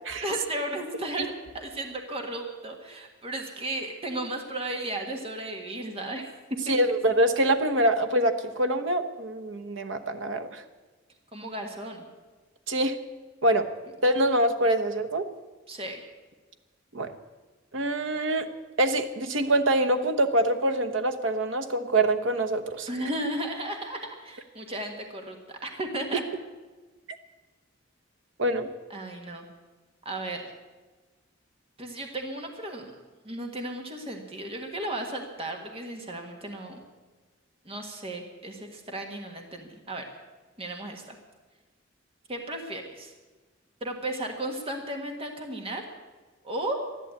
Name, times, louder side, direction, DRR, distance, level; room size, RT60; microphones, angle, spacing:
voice 1, 0.2-6.3 6.7-6.8 11.3-12.1 15.7-16.0 22.9-26.2 28.9-29.4 30.0-30.5 31.8-36.8 37.6-40.0 40.6-41.2 42.3-43.1 43.8-45.8 46.4-46.8, right 1 dB, 30° right, 3 dB, 1.6 m, -35 dB
voice 2, 6.7-10.6 12.7-13.0 13.4-13.7 14.0-15.3 16.9-17.1 17.7-18.5 18.8-22.9 28.4-28.7, right 1 dB, 70° right, 7 dB, 1.1 m, -25 dB
13.0 x 11.5 x 8.4 m, 1.3 s
head